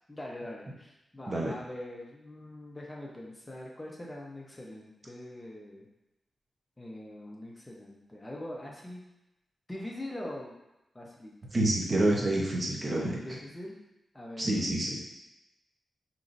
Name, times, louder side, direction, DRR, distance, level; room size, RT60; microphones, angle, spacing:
voice 1, 0.1-5.9 6.8-9.0 9.7-10.5 10.9-11.3 13.2-13.8 14.1-15.0, left 1 dB, 15° left, -3 dB, 0.7 m, -43 dB
voice 2, 11.5-13.2 14.4-15.0, right 1 dB, 35° right, -2 dB, 0.9 m, -28 dB
5.4 x 3.0 x 2.6 m, 0.92 s
wide cardioid pair, 120°, 0 cm